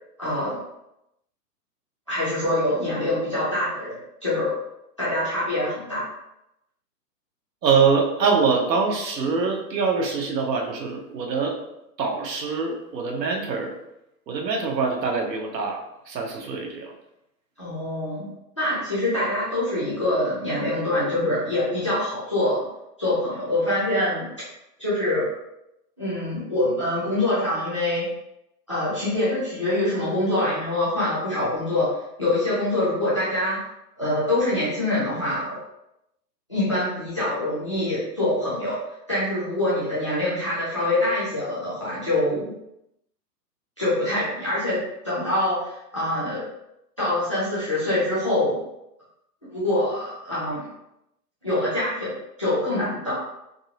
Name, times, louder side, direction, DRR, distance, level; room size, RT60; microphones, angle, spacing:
voice 1, 0.2-0.6 2.1-3.9 4.2-4.6 5.0-6.0 17.6-22.7 23.0-24.3 24.8-25.3 26.0-28.0 28.7-31.9 32.2-33.6 34.0-35.6 36.5-38.8 39.1-42.5 43.8-44.8 45.0-46.4 47.0-48.6 49.5-50.6 51.4-53.1, left 1 dB, 20° left, -10 dB, 0.5 m, -25 dB
voice 2, 7.6-11.6 12.0-13.8 14.3-16.9, right 5 dB, 80° right, 1 dB, 1.0 m, -24 dB
3.7 x 2.8 x 2.7 m, 0.85 s
hypercardioid pair, 170°, 49 cm